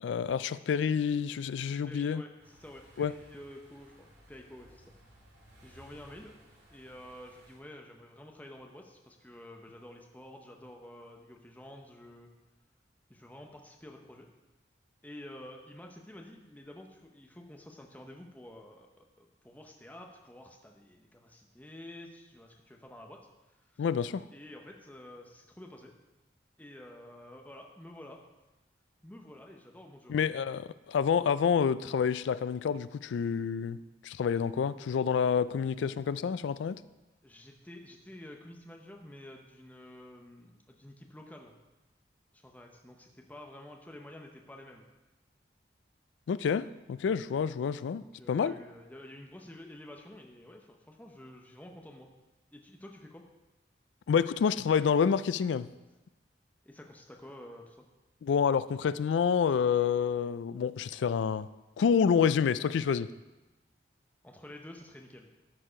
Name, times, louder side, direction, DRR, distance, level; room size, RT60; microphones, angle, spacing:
voice 1, 0.0-2.2 3.0-3.1 23.8-24.2 30.1-33.8 34.0-36.8 46.3-48.5 54.1-55.7 58.2-61.5 61.8-63.1, left 7 dB, 85° left, 16 dB, 0.3 m, -28 dB
voice 2, 1.8-4.9 5.6-6.4 6.7-12.3 13.1-14.3 15.0-23.9 24.3-25.9 26.6-28.2 29.0-30.1 37.2-41.6 42.3-44.8 48.0-52.1 52.5-53.2 56.6-57.8 64.2-65.3, left 1 dB, 10° left, 2 dB, 0.7 m, -50 dB
sound 1, 2.4-7.6, equal, 85° right, 2.5 m, -58 dB
13.0 x 4.6 x 5.0 m, 1.1 s
head